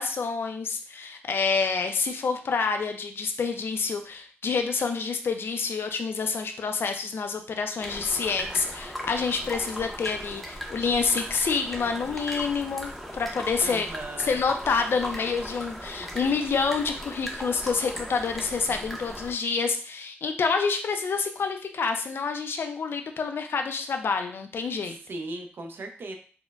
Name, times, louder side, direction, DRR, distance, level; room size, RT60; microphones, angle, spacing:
voice 1, 0.0-13.9 14.2-25.0, left 5 dB, 60° left, 6 dB, 0.4 m, -28 dB
sound 1, 7.8-19.3, equal, ahead, 0.6 m, -38 dB
voice 2, 13.6-14.4 24.8-26.2, right 2 dB, 60° right, 5 dB, 0.5 m, -37 dB
4.3 x 2.1 x 2.3 m, 0.41 s
wide cardioid pair, 90°, 4 cm